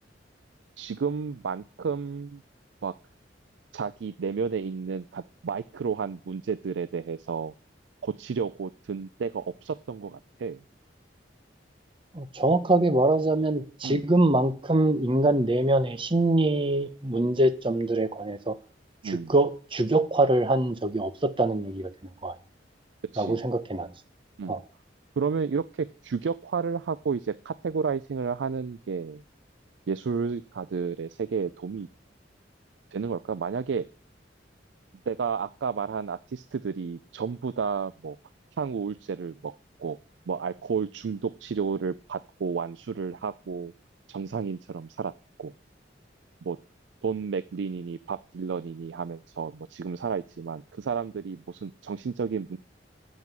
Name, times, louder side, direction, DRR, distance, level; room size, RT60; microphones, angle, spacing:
voice 1, 0.8-2.4 2.8-2.9 3.7-7.5 8.0-10.6 13.8-14.0 19.0-19.3 23.1-23.4 24.4-24.6 25.2-29.2 29.9-31.9 32.9-33.9 35.1-38.2 38.6-39.5 39.8-40.0 40.3-43.7 44.1-45.1 45.4-45.5 46.4-46.6 47.0-52.6, right 5 dB, 75° right, 0.4 m, -31 dB
voice 2, 12.1-18.5 19.0-21.9 22.2-22.3 23.2-23.9 24.5-24.6, right 2 dB, 30° right, 0.9 m, -24 dB
9.3 x 7.5 x 7.5 m
head